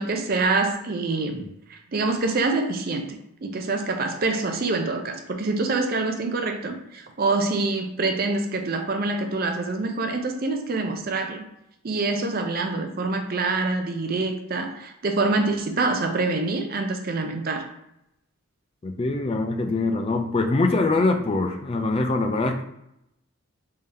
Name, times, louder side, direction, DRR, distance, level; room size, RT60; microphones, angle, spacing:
voice 1, 0.0-11.4 11.8-17.7, right 3 dB, 45° right, 5 dB, 0.5 m, -26 dB
voice 2, 18.8-22.6, left 2 dB, 25° left, 6 dB, 0.3 m, -23 dB
3.6 x 2.7 x 3.4 m, 0.82 s
head